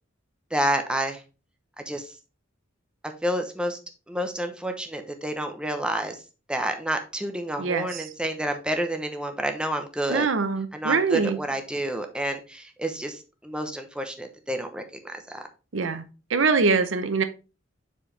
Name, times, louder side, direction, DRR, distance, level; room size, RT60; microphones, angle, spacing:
voice 1, 0.5-1.2 1.9-2.1 3.2-3.8 4.1-6.2 6.5-10.3 10.7-15.5, right 1 dB, 5° right, 0.8 m, -29 dB
voice 2, 7.6-8.0 10.1-11.4 15.7-16.0 16.3-17.2, right 4 dB, 90° right, 0.7 m, -23 dB
7.2 x 4.5 x 3.3 m
head